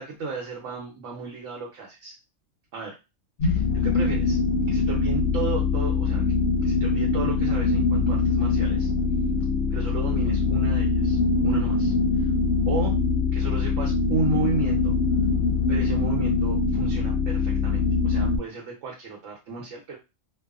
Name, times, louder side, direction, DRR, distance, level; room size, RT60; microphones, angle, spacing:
voice 1, 0.0-2.2 2.7-2.9 3.4-4.4 4.7-6.2 6.6-8.9 9.7-11.2 11.4-12.3 12.7-13.0 13.3-15.0 15.7-20.0, right 4 dB, 70° right, -2 dB, 1.0 m, -33 dB
sound 1, 3.4-18.4, left 4 dB, 65° left, 0.8 m, -23 dB
2.7 x 2.3 x 2.3 m, 0.26 s
omnidirectional pair, 1.4 m